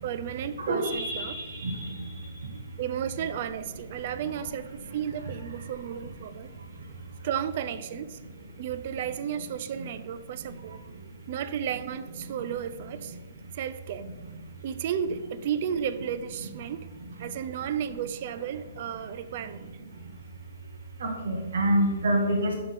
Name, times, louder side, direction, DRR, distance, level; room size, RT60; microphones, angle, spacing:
voice 1, 0.0-1.4 2.8-6.5 7.2-8.2 8.6-10.8 11.3-13.2 13.5-14.1 14.6-16.9 17.2-19.7, right 9 dB, 45° right, 13 dB, 0.4 m, -33 dB
voice 2, 0.7-1.9 21.0-22.5, right 1 dB, 70° right, -1 dB, 1.0 m, -26 dB
5.5 x 3.4 x 5.7 m, 1.3 s
hypercardioid pair, 155°, 0 cm